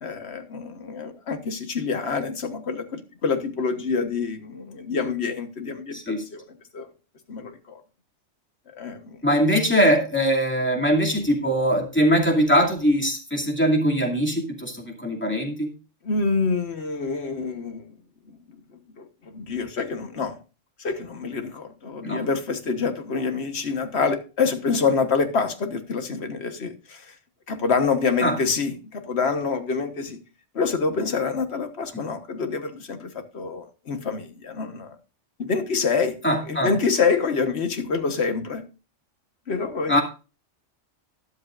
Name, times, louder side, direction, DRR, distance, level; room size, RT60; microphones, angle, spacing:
voice 1, 0.0-6.4 6.7-6.9 7.3-7.8 8.7-9.2 16.0-17.9 18.3-18.4 19.0-20.4 20.8-27.1 27.5-30.2 30.5-35.0 35.4-36.2 36.5-38.6 39.5-40.0, left 5 dB, 60° left, 8 dB, 1.5 m, -26 dB
voice 2, 5.9-6.2 9.2-15.7 22.0-22.2 28.2-28.4 31.9-32.0 36.2-36.7 39.9-40.0, equal, 10° left, 0 dB, 2.6 m, -21 dB
13.0 x 11.5 x 2.5 m, 0.32 s
omnidirectional pair, 1.3 m